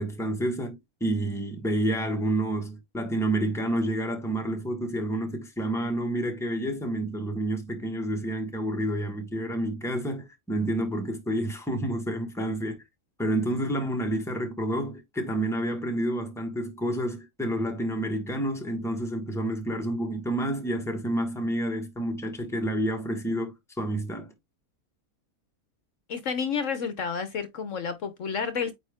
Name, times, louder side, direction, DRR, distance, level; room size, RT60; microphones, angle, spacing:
voice 1, 0.0-12.8 13.2-24.3, right 1 dB, ahead, 1.4 m, -29 dB
voice 2, 26.1-28.7, left 6 dB, 60° left, 1.2 m, -30 dB
8.9 x 3.1 x 3.5 m
omnidirectional pair, 1.5 m